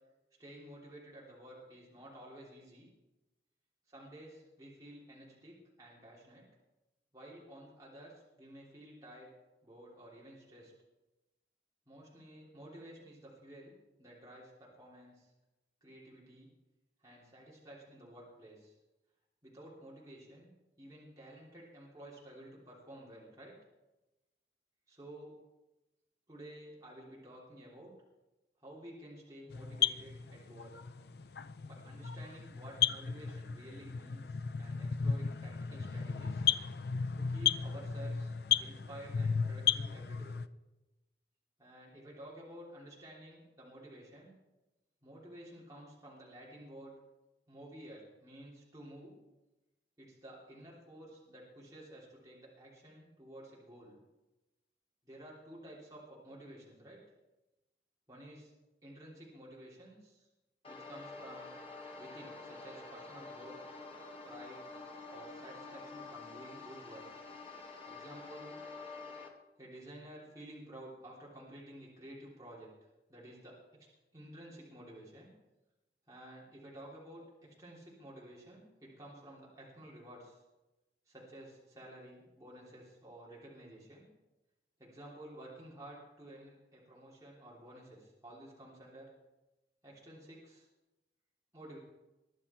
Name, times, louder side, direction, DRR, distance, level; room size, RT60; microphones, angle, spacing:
voice 1, 0.4-2.9 3.9-6.4 7.1-8.1 8.4-9.3 9.6-10.7 11.9-13.7 14.0-15.3 15.8-16.5 17.0-18.7 19.4-20.5 20.8-23.5 24.9-25.3 26.3-27.9 28.6-30.7 31.6-36.5 37.1-38.3 38.6-40.3 41.6-44.4 45.0-46.9 47.5-49.2 50.0-54.0 55.0-57.0 58.1-58.5 58.8-60.3 60.7-61.5 62.0-63.6 64.2-64.6 65.1-67.1 67.9-68.6 69.6-72.7 73.1-73.6 74.1-75.3 76.1-80.4 81.1-84.0 84.8-89.1 89.8-90.7 91.5-91.8, right 1 dB, 20° right, -6 dB, 3.2 m, -52 dB
sound 1, 29.5-40.5, left 8 dB, 65° left, 0.5 m, -34 dB
sound 2, 60.6-69.3, left 3 dB, 30° left, 1.6 m, -48 dB
21.5 x 11.0 x 4.4 m, 1.0 s
head